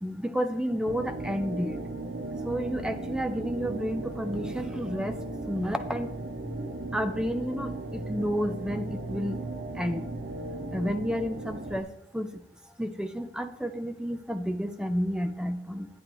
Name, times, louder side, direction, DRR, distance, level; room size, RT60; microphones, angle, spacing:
voice 1, 0.0-1.8 2.4-5.1 5.5-6.1 6.9-9.4 9.8-10.0 10.7-11.9 12.1-12.3 12.8-15.9, equal, 5° right, 8 dB, 0.6 m, -31 dB
sound 1, 0.8-11.8, right 2 dB, 75° right, 0.8 m, -36 dB
11.5 x 9.0 x 3.1 m, 0.77 s
head